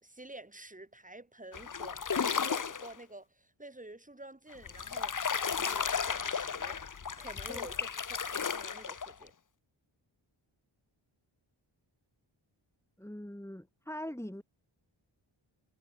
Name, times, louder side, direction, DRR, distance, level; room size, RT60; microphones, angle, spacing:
voice 1, 0.0-6.8 7.2-7.9 8.2-9.3, right 2 dB, 15° right, 3.6 m, -50 dB
sound 1, 1.5-2.9 4.5-9.3, left 6 dB, 40° left, 0.9 m, -34 dB
voice 2, 13.0-14.4, equal, 5° left, 4.7 m, -42 dB
wide cardioid pair, 100°, 48 cm